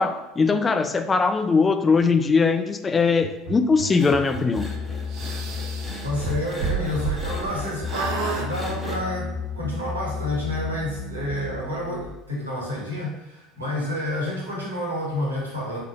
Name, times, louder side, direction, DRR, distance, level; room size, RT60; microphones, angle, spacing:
voice 1, 0.0-4.7, left 4 dB, 20° left, 8 dB, 0.3 m, -20 dB
sound 1, 3.2-12.1, left 4 dB, 65° left, 1.3 m, -33 dB
sound 2, 3.9-9.0, right 1 dB, ahead, 1.0 m, -40 dB
sound 3, 5.1-7.6 7.9-8.5, right 7 dB, 55° right, 0.6 m, -31 dB
voice 2, 6.0-15.8, left 1 dB, 80° right, -3 dB, 1.0 m, -29 dB
3.6 x 2.4 x 4.2 m, 0.93 s
figure-of-eight pair, 65°, 0 cm